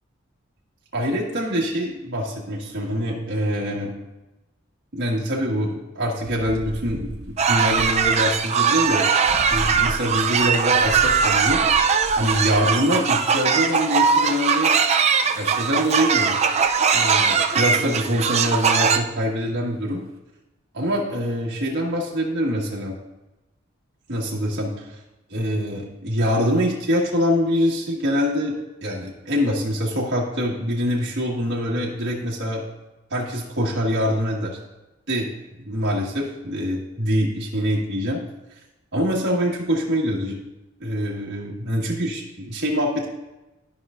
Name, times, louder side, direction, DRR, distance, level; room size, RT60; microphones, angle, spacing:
voice 1, 0.9-4.0 4.9-9.1 9.5-11.8 12.2-14.8 15.4-16.3 16.9-20.0 20.7-23.0 24.1-24.9 25.3-32.6 33.1-34.6 35.1-35.3 35.6-38.2 38.9-40.4 40.8-43.1, equal, 60° right, -4 dB, 1.7 m, -24 dB
sound 1, 6.2-13.1 16.6-17.2, right 1 dB, 80° right, 0.8 m, -36 dB
sound 2, 7.4-19.0, right 6 dB, 35° right, 0.5 m, -20 dB
13.0 x 5.5 x 2.5 m, 1.0 s
head